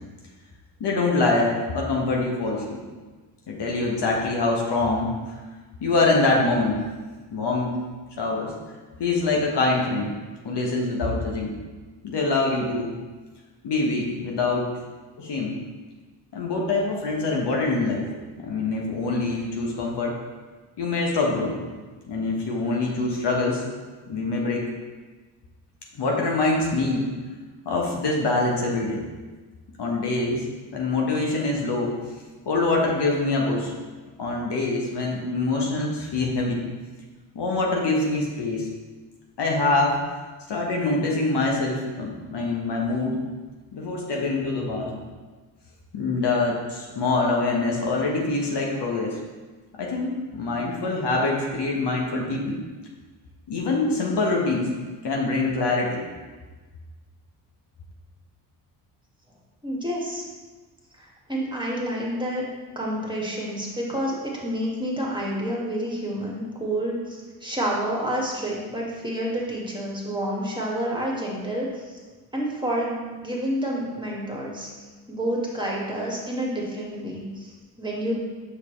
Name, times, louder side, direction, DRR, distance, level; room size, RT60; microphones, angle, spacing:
voice 1, 0.8-2.8 3.5-5.1 5.8-6.8 7.3-7.8 8.2-8.5 9.0-10.1 10.4-11.5 12.0-12.9 13.6-14.7 15.2-15.5 16.3-18.1 18.4-20.2 20.8-21.6 22.1-23.6 24.1-24.7 25.9-27.1 27.6-29.0 29.8-30.4 30.7-32.0 32.5-33.7 34.2-36.6 37.3-38.7 39.4-40.0 40.5-43.2 43.7-45.0 45.9-49.2 49.8-52.6 53.5-54.7 55.0-56.0, left 3 dB, 55° left, -1 dB, 1.3 m, -24 dB
voice 2, 59.6-60.2 61.0-62.4 62.8-72.0 72.3-74.7 75.1-78.1, right 1 dB, 10° right, -4 dB, 2.0 m, -29 dB
6.4 x 5.5 x 3.2 m, 1.3 s
hypercardioid pair, 45°, 50 cm